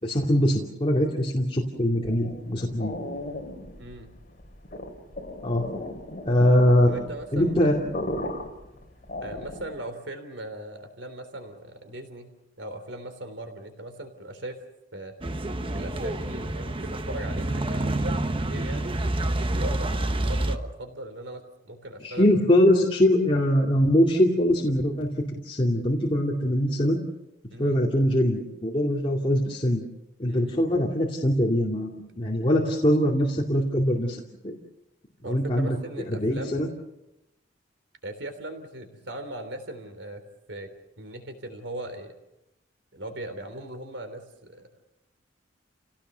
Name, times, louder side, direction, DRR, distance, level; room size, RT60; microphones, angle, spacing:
voice 1, 0.0-3.0 5.4-5.6 6.3-7.0 7.3-7.8 22.0-27.0 27.6-29.8 30.2-34.6 35.2-35.8 36.2-36.7, equal, 30° left, -2 dB, 2.5 m, -22 dB
sound 1, 2.0-9.9, left 1 dB, 45° left, 3.4 m, -37 dB
voice 2, 3.8-4.1 6.8-7.6 9.2-12.3 12.6-14.6 14.9-15.1 15.7-19.0 19.5-22.3 27.5-27.8 30.3-30.5 35.2-36.6 38.0-40.2 40.5-40.7 41.0-42.1 42.9-44.7, right 1 dB, 85° right, 7 dB, 3.5 m, -39 dB
sound 2, 15.2-20.6, right 1 dB, 30° right, 1.1 m, -28 dB
29.5 x 17.5 x 6.9 m, 0.90 s
head